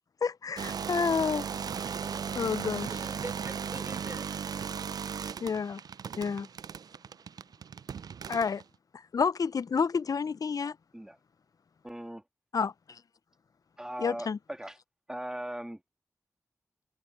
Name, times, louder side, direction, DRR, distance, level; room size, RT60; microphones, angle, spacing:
voice 1, 0.2-1.5 2.3-2.9 5.4-5.8 6.2-6.5 8.3-8.6 9.1-10.8 12.5-13.0 14.0-14.4, left 5 dB, 65° left, 0.4 m, -29 dB
sound 1, 0.6-8.6, right 7 dB, 80° right, 0.3 m, -36 dB
voice 2, 1.6-4.3, right 2 dB, 40° right, 3.1 m, -46 dB
voice 3, 11.8-12.2 13.8-14.8 15.1-15.8, right 1 dB, 10° right, 1.5 m, -39 dB
cardioid pair, 45°, 7 cm